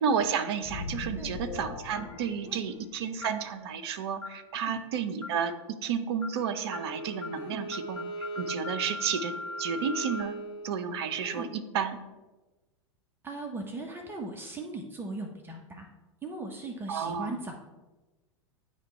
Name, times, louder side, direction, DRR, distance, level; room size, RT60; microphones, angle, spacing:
voice 1, 0.0-9.3 9.6-10.4 10.6-12.0 16.9-17.3, right 7 dB, 55° right, 8 dB, 0.6 m, -31 dB
sound 1, 0.6-3.2, left 3 dB, 45° left, 1.3 m, -40 dB
sound 2, 3.2-3.5 4.2-4.4 5.2-5.5 6.2-6.4 6.7-6.9 7.2-7.4 7.7-10.2, left 3 dB, 80° left, 0.6 m, -40 dB
Bowed string instrument, 6.4-11.4, right 2 dB, 20° left, 1.1 m, -41 dB
voice 2, 13.2-15.9 16.2-17.6, right 2 dB, 15° right, 2 dB, 0.7 m, -38 dB
9.1 x 3.0 x 4.3 m, 1.2 s
figure-of-eight pair, 90°, 16 cm